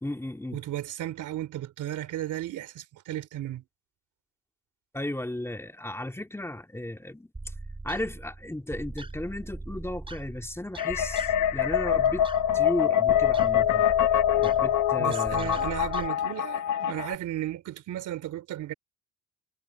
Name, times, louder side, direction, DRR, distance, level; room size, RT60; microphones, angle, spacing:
voice 1, 0.0-0.6 4.9-7.3 7.8-12.3 12.5-13.9 14.4-15.6, left 1 dB, 10° left, 2.4 m, -35 dB
voice 2, 0.5-3.6 15.0-18.7, right 13 dB, 80° right, 3.2 m, -34 dB
sound 1, 7.3-16.1, right 2 dB, 15° right, 4.8 m, -41 dB
sound 2, 10.8-17.2, left 10 dB, 75° left, 1.4 m, -24 dB
cardioid pair, 90°, 30 cm